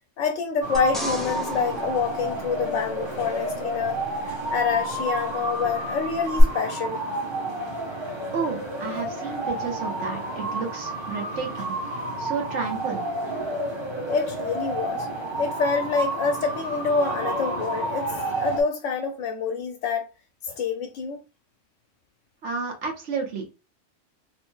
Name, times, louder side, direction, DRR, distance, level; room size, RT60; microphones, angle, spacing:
voice 1, 0.2-7.0 13.5-13.6 14.1-15.1 15.3-20.1 20.4-21.2, left 5 dB, 85° left, 0.9 m, -27 dB
sound 1, 0.6-18.6, right 2 dB, 25° right, 0.9 m, -31 dB
sound 2, 0.7-3.2 6.4-6.5, left 1 dB, ahead, 0.3 m, -35 dB
voice 2, 8.3-11.7 12.2-13.0 22.4-23.5, right 5 dB, 75° right, 1.2 m, -31 dB
3.3 x 2.6 x 2.3 m
omnidirectional pair, 1.3 m